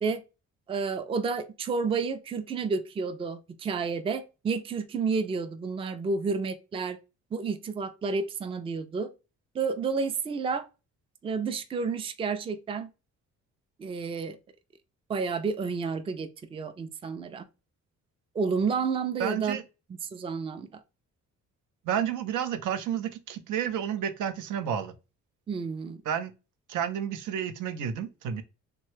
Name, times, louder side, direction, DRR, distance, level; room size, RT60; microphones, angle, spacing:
voice 1, 0.7-7.0 7.3-9.1 9.5-10.6 11.2-12.9 13.8-14.4 15.1-17.5 18.3-19.6 19.9-20.8 25.5-26.0, right 5 dB, 20° right, 0.3 m, -30 dB
voice 2, 19.2-19.6 21.9-24.9 26.1-26.3 26.7-28.4, right 9 dB, 80° right, 0.5 m, -30 dB
3.1 x 2.2 x 3.1 m
cardioid pair, 90°, 30 cm